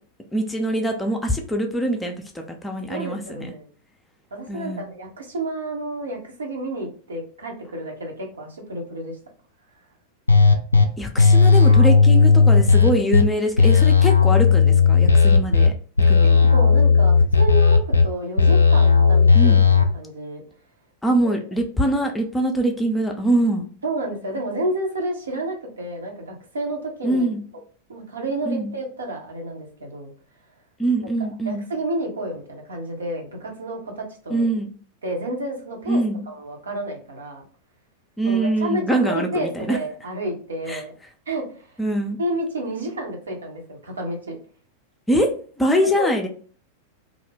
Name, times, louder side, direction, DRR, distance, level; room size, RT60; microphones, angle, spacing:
voice 1, 0.3-3.5 4.5-4.9 11.0-15.7 16.1-16.5 19.3-19.6 21.0-23.7 27.0-27.4 28.5-28.7 30.8-31.6 34.3-34.7 35.9-36.2 38.2-39.8 40.7-40.8 41.8-42.2 45.1-45.3 45.6-46.3, right 1 dB, 10° left, 2 dB, 0.4 m, -23 dB
voice 2, 2.9-3.7 4.3-9.2 16.0-20.4 21.2-21.4 23.8-27.3 27.9-30.1 31.4-34.5 35.0-36.0 36.3-37.4 38.2-40.9 41.3-41.7 42.2-44.4 45.8-46.1, right 1 dB, 70° right, 1 dB, 0.7 m, -30 dB
sound 1, 10.3-10.8 11.2-13.2 13.6-15.7 16.0-18.0 18.4-19.8, left 5 dB, 85° left, 0.3 m, -14 dB
2.4 x 2.1 x 3.3 m, 0.43 s
figure-of-eight pair, 90°, 0 cm